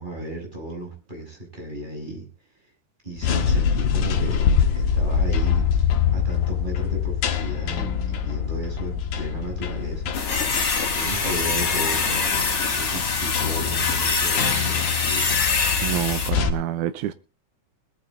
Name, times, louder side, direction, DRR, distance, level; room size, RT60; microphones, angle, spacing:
voice 1, 0.0-2.3 3.0-4.4 4.7-5.7 6.1-10.2 10.9-15.3, right 1 dB, 15° right, 6.7 m, -35 dB
sound 1, 3.2-16.5, left 7 dB, 85° left, 2.9 m, -25 dB
sound 2, 10.1-16.3, left 4 dB, 50° left, 3.8 m, -24 dB
voice 2, 15.8-17.1, right 12 dB, 80° right, 2.2 m, -27 dB
21.0 x 9.6 x 3.8 m
omnidirectional pair, 3.4 m